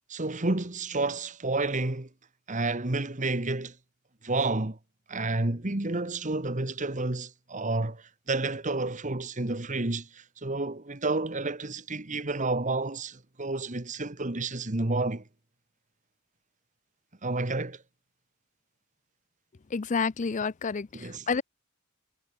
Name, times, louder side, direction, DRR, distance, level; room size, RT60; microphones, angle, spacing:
voice 1, 0.1-2.1 2.5-3.7 4.2-4.8 5.1-15.2 17.2-17.8 20.9-21.3, right 2 dB, 35° right, 1.6 m, -30 dB
voice 2, 19.7-21.4, left 5 dB, 35° left, 0.5 m, -29 dB
head